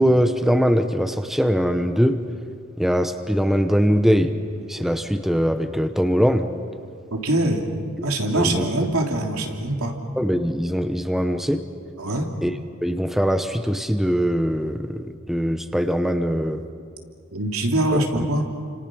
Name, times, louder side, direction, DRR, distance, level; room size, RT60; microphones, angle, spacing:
voice 1, 0.0-2.2 2.8-4.4 4.7-6.5 8.3-8.7 10.2-11.6 12.4-12.5 12.8-16.6 17.9-18.0, equal, ahead, 8 dB, 0.9 m, -21 dB
voice 2, 7.1-7.6 8.0-9.9 12.0-12.3 17.3-18.5, right 1 dB, 80° right, 2 dB, 3.1 m, -23 dB
30.0 x 26.5 x 6.2 m, 2.4 s
head